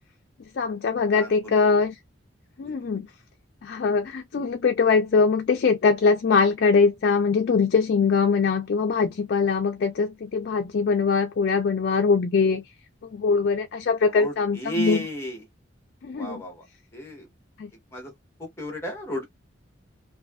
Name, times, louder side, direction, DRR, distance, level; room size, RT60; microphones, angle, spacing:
voice 1, 0.5-1.9 2.6-3.1 3.6-12.7 13.0-15.0 16.0-16.4 17.6-17.7, left 5 dB, 55° left, 0.3 m, -22 dB
voice 2, 1.1-1.6 14.1-15.5 16.1-16.6 16.9-17.3 17.9-18.1 18.4-19.3, right 1 dB, 15° left, 1.0 m, -33 dB
2.6 x 2.3 x 2.3 m
head